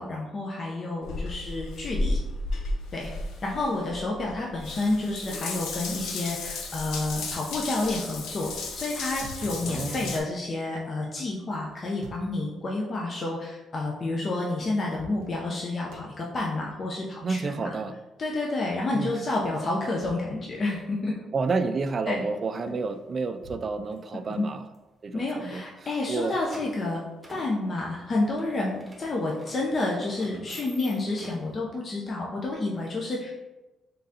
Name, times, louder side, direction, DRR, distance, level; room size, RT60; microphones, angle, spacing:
voice 1, 0.0-2.2 2.9-3.1 3.4-17.5 18.2-21.1 22.1-22.2 24.3-24.5 25.1-27.0 27.3-33.4, left 2 dB, 45° left, -2 dB, 0.6 m, -29 dB
Water tap faucet / Bathtub (filling or washing) / Drip, 1.0-10.2, left 2 dB, 90° left, 0.6 m, -34 dB
sound 1, 8.6-10.1 11.6-12.4 14.3-14.4 14.7-15.6 15.9-16.2 19.3-20.4 20.7-20.8 22.7-23.6, right 1 dB, 90° right, 0.5 m, -47 dB
voice 2, 9.7-10.2 17.2-18.0 18.9-19.2 21.3-24.6 25.0-26.4, right 4 dB, 45° right, 10 dB, 0.3 m, -30 dB
sound 2, 22.6-22.8 23.2-23.5 23.8-24.8 25.0-25.1 25.3-25.4 25.9-31.6, right 1 dB, 10° right, 0.9 m, -49 dB
3.9 x 3.7 x 2.8 m, 1.1 s
cardioid pair, 90°, 0 cm